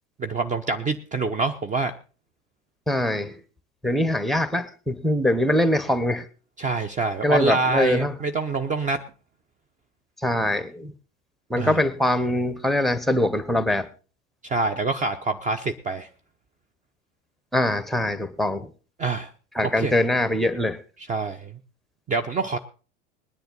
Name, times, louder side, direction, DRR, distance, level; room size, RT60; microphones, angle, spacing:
voice 1, 0.2-1.9 6.6-9.0 11.5-11.8 14.4-16.1 19.0-19.3 19.6-20.0 21.0-21.5 22.1-22.6, right 3 dB, 20° right, 8 dB, 0.8 m, -26 dB
voice 2, 2.9-3.4 3.8-6.2 7.2-8.1 10.2-10.9 11.5-13.9 17.5-18.7 19.6-20.8, left 1 dB, ahead, 13 dB, 1.1 m, -23 dB
20.0 x 10.5 x 3.9 m, 0.37 s
figure-of-eight pair, 80°, 37 cm